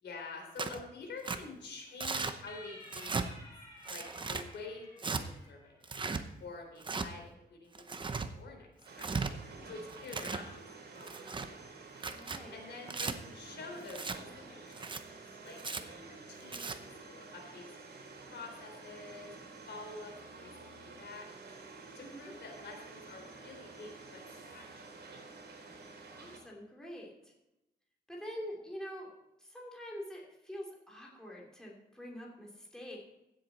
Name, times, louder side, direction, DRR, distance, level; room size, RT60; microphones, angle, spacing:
voice 1, 0.0-3.1 3.9-5.8 6.4-8.7 8.9-9.1 9.6-11.1 12.5-14.1 14.5-14.9 15.4-17.7 18.0-19.3 19.7-20.5 20.8-21.3 21.9-24.8, left 3 dB, 85° left, 1 dB, 3.7 m, -48 dB
Tearing, 0.6-0.8 1.2-1.4 2.0-2.3 2.9-3.3 3.9-4.4 5.0-5.2 5.8-6.2 6.8-7.1 7.7-8.3 8.9-9.3 9.9-10.4 11.0-11.5 12.0-12.4 12.9-13.1 13.9-14.2 14.7-15.0 15.6-15.8 16.4-16.8, right 4 dB, 25° right, 0.8 m, -36 dB
sound 1, 2.5-6.0, left 2 dB, 20° left, 5.0 m, -54 dB
sound 2, 8.8-26.4, right 3 dB, 70° right, 4.2 m, -50 dB
voice 2, 12.1-12.6 22.0-22.3 26.1-27.3 28.1-29.1 29.4-33.0, equal, 5° left, -3 dB, 3.1 m, -45 dB
16.0 x 7.9 x 4.2 m, 0.91 s
wide cardioid pair, 140°, 18 cm